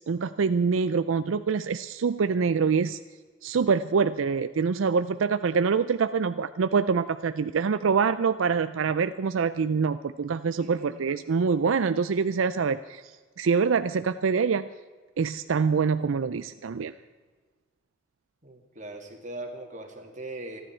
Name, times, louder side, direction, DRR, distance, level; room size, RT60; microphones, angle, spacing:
voice 1, 0.0-3.0 3.4-13.1 13.4-14.7 15.2-16.9, right 5 dB, 90° right, 12 dB, 0.5 m, -25 dB
voice 2, 10.6-11.0 18.4-20.6, right 1 dB, 40° right, 2 dB, 2.3 m, -40 dB
28.0 x 10.5 x 4.4 m, 1.4 s
head